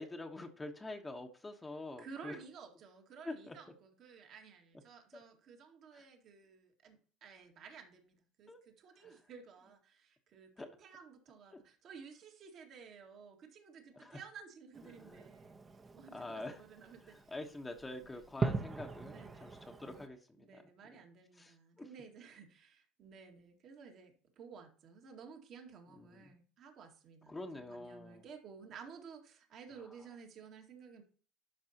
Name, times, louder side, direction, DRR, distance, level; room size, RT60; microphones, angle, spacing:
voice 1, 0.0-2.4 3.2-3.6 5.1-5.2 5.9-6.1 8.5-8.6 9.0-9.2 10.6-10.7 11.5-11.6 13.9-14.2 14.8-15.3 16.1-16.6 17.0-20.6 20.9-21.0 21.4-21.9 26.0-26.3 27.3-28.2 29.7-29.9, left 2 dB, 15° left, 2 dB, 1.1 m, -46 dB
voice 2, 2.0-17.3 18.0-18.2 19.0-19.7 20.4-31.0, right 6 dB, 55° right, 3 dB, 2.0 m, -54 dB
Fireworks, 14.7-20.1, right 3 dB, 25° right, 1.0 m, -42 dB
12.0 x 5.3 x 2.9 m, 0.43 s
hypercardioid pair, 70°, 0 cm